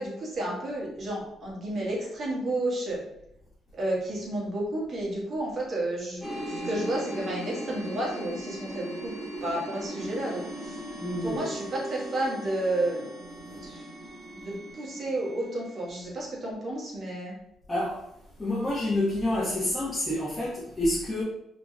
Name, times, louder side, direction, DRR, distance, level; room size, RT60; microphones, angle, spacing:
voice 1, 0.0-3.0 3.7-9.1 9.4-10.8 11.2-13.1 13.4-13.9 14.3-17.3, right 1 dB, 50° right, -4 dB, 1.5 m, -31 dB
sound 1, 6.2-15.9, right 1 dB, 5° right, 1.1 m, -38 dB
voice 2, 11.0-11.4 17.7-18.0 18.4-21.2, left 1 dB, 20° left, -8 dB, 1.2 m, -28 dB
3.9 x 2.8 x 2.3 m, 0.81 s
cardioid pair, 90°, 0 cm